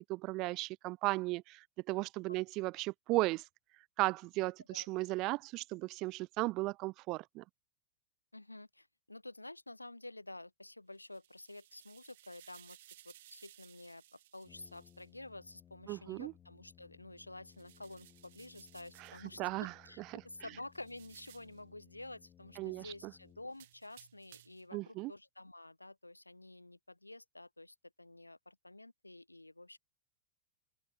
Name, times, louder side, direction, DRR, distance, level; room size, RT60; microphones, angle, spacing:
voice 1, 0.1-3.4 4.0-7.4 15.9-16.3 19.0-19.7 20.1-20.2 22.6-23.1 24.7-25.1, right 21 dB, 40° right, 0.6 m, -36 dB
voice 2, 8.3-12.8 13.0-29.8, left 2 dB, 85° left, 1.8 m, -50 dB
sound 1, 11.0-15.1 17.5-19.3 20.7-21.6 23.5-24.7, right 14 dB, 55° right, 1.3 m, -60 dB
Brass instrument, 14.4-23.9, left 9 dB, 25° left, 2.6 m, -63 dB
open air
figure-of-eight pair, 90°, 0 cm